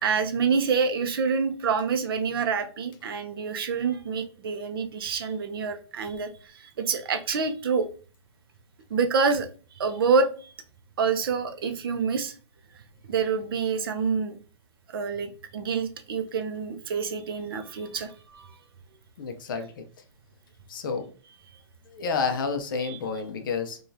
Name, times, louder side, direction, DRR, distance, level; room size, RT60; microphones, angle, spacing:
voice 1, 0.0-7.9 8.9-9.5 9.8-10.5 11.0-12.4 13.1-14.4 14.9-18.5 22.8-23.0, right 5 dB, 45° right, 7 dB, 0.5 m, -27 dB
voice 2, 19.2-19.8 20.7-21.1 21.9-23.8, left 5 dB, 40° left, 7 dB, 0.6 m, -30 dB
4.8 x 2.3 x 2.7 m, 0.38 s
hypercardioid pair, 175°, 16 cm